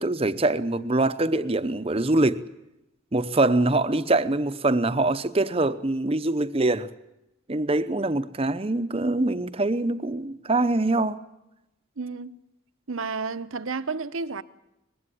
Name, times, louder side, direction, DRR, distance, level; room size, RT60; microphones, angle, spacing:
voice 1, 0.0-2.4 3.1-6.9 7.5-11.2, right 2 dB, 30° right, 0.7 m, -24 dB
voice 2, 12.0-12.4 12.9-14.4, right 4 dB, 80° right, 0.9 m, -31 dB
20.5 x 15.5 x 9.9 m
head